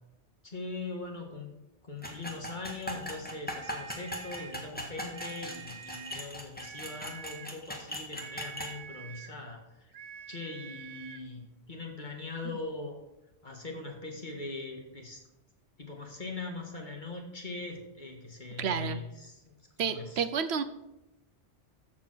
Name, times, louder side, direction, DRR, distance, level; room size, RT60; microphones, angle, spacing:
voice 1, 0.4-1.5 1.8-9.9 10.3-13.0 13.4-15.2 15.8-20.2, left 3 dB, 40° left, 1 dB, 1.9 m, -41 dB
sound 1, 2.0-8.7, equal, 10° left, 1.6 m, -40 dB
sound 2, 3.5-4.6 5.1-6.3 6.6-7.6 8.2-9.4 9.9-11.3, right 7 dB, 90° right, 1.1 m, -47 dB
voice 2, 18.6-19.0 19.8-20.6, right 6 dB, 65° right, 11 dB, 1.0 m, -30 dB
14.5 x 4.9 x 6.2 m, 0.93 s
omnidirectional pair, 1.2 m